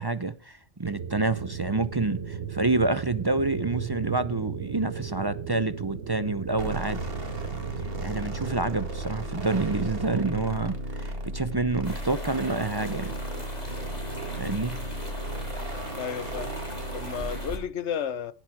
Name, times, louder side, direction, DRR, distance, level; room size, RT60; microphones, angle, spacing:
voice 1, 0.0-7.0 8.0-13.1 14.3-14.8, right 3 dB, 30° right, 0.5 m, -28 dB
sound 1, 0.8-10.5, right 8 dB, 85° right, 1.2 m, -36 dB
sound 2, 6.6-17.7, right 1 dB, 55° right, 2.3 m, -35 dB
sound 3, 11.8-17.6, equal, 35° left, 3.5 m, -41 dB
voice 2, 16.0-16.5 16.9-18.3, left 8 dB, 80° left, 1.2 m, -32 dB
18.0 x 7.6 x 4.6 m
omnidirectional pair, 1.2 m